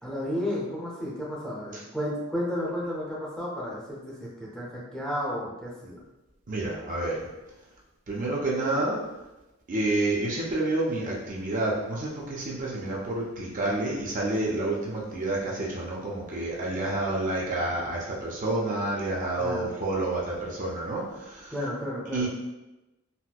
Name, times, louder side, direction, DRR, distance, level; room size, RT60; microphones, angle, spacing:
voice 1, 0.0-6.0 19.4-19.7 21.5-22.3, equal, 5° left, -6 dB, 0.7 m, -32 dB
voice 2, 6.5-7.3 8.1-9.0 9.7-21.5 22.1-22.3, right 2 dB, 40° right, -4 dB, 0.5 m, -29 dB
4.1 x 2.1 x 2.3 m, 1.0 s
head